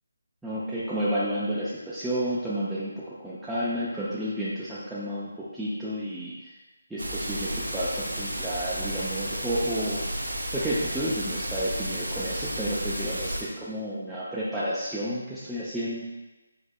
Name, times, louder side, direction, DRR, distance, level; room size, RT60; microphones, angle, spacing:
voice 1, 0.4-6.5 6.9-16.0, equal, 5° right, -12 dB, 0.4 m, -31 dB
sound 1, 7.0-13.4, right 1 dB, 80° right, 0.7 m, -32 dB
4.8 x 3.4 x 2.2 m, 1.1 s
figure-of-eight pair, 150°, 0 cm